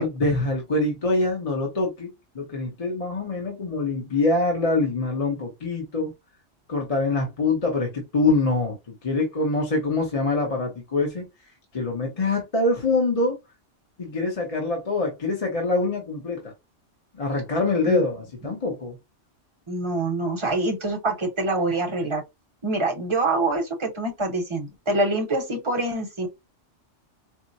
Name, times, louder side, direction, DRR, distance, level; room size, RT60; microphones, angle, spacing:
voice 1, 0.0-2.1 2.3-6.1 6.7-11.2 11.7-13.4 14.0-16.5 17.1-19.0, left 2 dB, 30° left, 0.9 m, -24 dB
voice 2, 19.7-22.2 22.6-26.3, right 2 dB, 25° right, 0.9 m, -25 dB
4.6 x 2.0 x 2.6 m
omnidirectional pair, 1.3 m